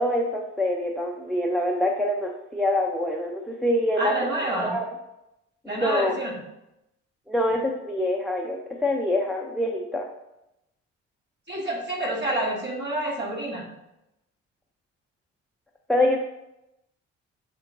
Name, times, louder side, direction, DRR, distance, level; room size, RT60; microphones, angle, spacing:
voice 1, 0.0-4.1 4.6-4.8 5.6-6.1 7.3-10.1 15.9-16.2, left 1 dB, ahead, -1 dB, 0.6 m, -25 dB
voice 2, 4.0-4.8 5.7-6.4 11.5-13.7, right 1 dB, 30° right, 0 dB, 1.9 m, -28 dB
6.8 x 3.7 x 3.8 m, 0.89 s
figure-of-eight pair, 45°, 38 cm